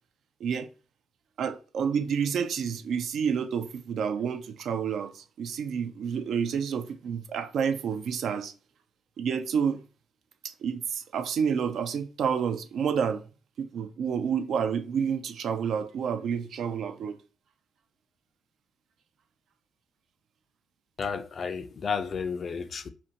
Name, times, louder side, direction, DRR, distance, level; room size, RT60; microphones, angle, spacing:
voice 1, 1.4-8.5 9.2-9.8 10.4-13.3 13.6-17.2, right 7 dB, 65° right, 0.3 m, -29 dB
voice 2, 21.0-22.9, left 6 dB, 45° left, 0.3 m, -32 dB
2.5 x 2.2 x 2.7 m
cardioid pair, 90°, 0 cm